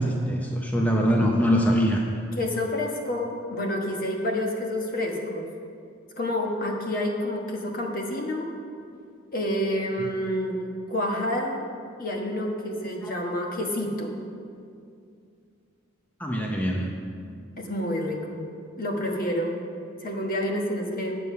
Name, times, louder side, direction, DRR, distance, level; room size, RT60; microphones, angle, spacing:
voice 1, 0.0-2.0 13.0-13.2 16.2-16.9, equal, 10° left, 0 dB, 0.6 m, -23 dB
voice 2, 2.4-5.5 6.2-8.5 9.3-10.6 10.9-11.6 12.0-14.2 17.6-18.5 18.8-19.6 20.0-21.1, left 1 dB, 45° left, 1 dB, 1.2 m, -28 dB
9.5 x 6.8 x 5.5 m, 2.4 s
head